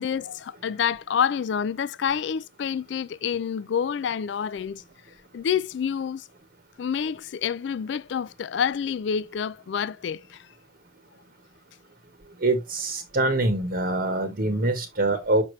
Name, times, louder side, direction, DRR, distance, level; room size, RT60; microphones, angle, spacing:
voice 1, 0.0-4.8 5.3-6.3 6.8-10.5, left 7 dB, 65° left, 0.3 m, -28 dB
voice 2, 12.4-15.4, right 2 dB, 50° right, 1.1 m, -24 dB
6.2 x 5.8 x 3.1 m
head